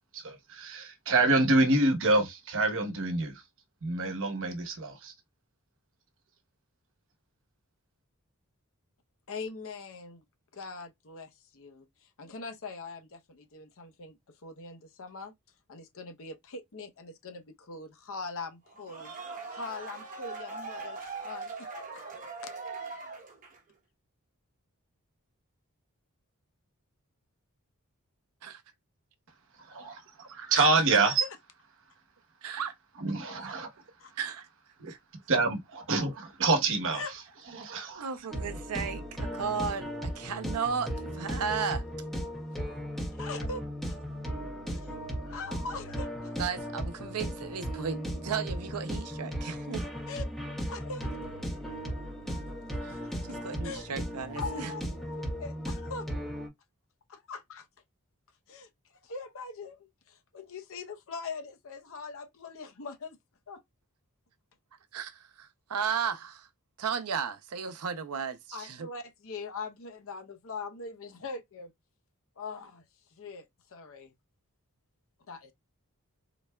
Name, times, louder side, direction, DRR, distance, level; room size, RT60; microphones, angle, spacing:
voice 1, 0.1-3.4 3.8-5.1 29.7-31.2 33.0-33.7 34.8-34.9 35.3-37.2 37.5-38.1, right 3 dB, 60° right, 1.0 m, -27 dB
voice 2, 9.3-10.2 10.5-14.2 14.4-15.3 15.7-19.1 19.5-22.5 30.5-30.7 31.1-31.3 34.0-34.1 36.9-37.1 43.1-43.6 43.9-44.0 44.7-44.9 45.2-46.4 50.1-50.2 50.7-51.1 52.4-53.1 53.6-53.9 54.4-54.8 55.4-56.1 57.1-57.7 58.5-63.2 63.5-63.6 68.5-71.7 72.4-72.9 73.1-74.1 75.3-75.5, left 4 dB, 65° left, 0.7 m, -42 dB
sound 1, 18.7-23.7, right 4 dB, 35° right, 1.0 m, -41 dB
voice 3, 32.4-32.8 34.2-34.5 34.9-35.0 37.9-41.8 46.4-49.9 52.8-53.0 53.3-54.7 64.9-66.5 66.8-68.9, right 6 dB, 80° right, 0.6 m, -34 dB
sound 2, 38.3-56.5, equal, ahead, 1.4 m, -36 dB
3.9 x 3.2 x 2.2 m
head